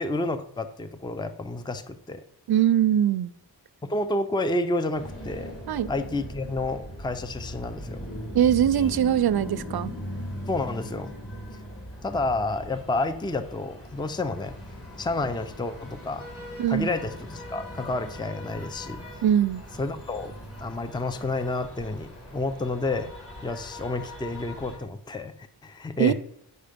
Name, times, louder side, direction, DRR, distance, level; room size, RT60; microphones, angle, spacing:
voice 1, 0.0-2.2 3.8-5.5 5.9-8.1 10.5-11.1 12.0-14.6 15.0-16.3 16.7-19.2 19.8-20.3 20.6-23.1 23.4-25.3 25.6-26.1, left 2 dB, 10° left, 0.5 m, -30 dB
voice 2, 2.5-3.3 5.7-5.9 8.3-9.9 16.6-16.9 19.2-19.6 26.0-26.1, right 10 dB, 60° right, 0.6 m, -22 dB
sound 1, 4.9-24.8, equal, 35° left, 3.2 m, -40 dB
9.6 x 5.5 x 5.1 m
wide cardioid pair, 95°, 42 cm